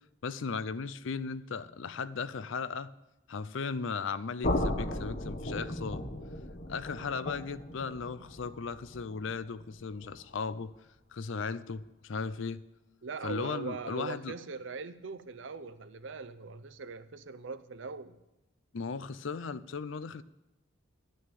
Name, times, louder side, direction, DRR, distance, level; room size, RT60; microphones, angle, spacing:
voice 1, 0.2-2.9 3.3-6.0 6.7-10.7 11.1-12.6 13.2-14.3 18.7-20.2, left 5 dB, 65° left, 0.5 m, -36 dB
sound 1, 4.4-10.3, left 1 dB, 40° left, 1.1 m, -36 dB
voice 2, 13.0-18.2, right 4 dB, 65° right, 0.6 m, -41 dB
11.0 x 6.3 x 8.3 m
head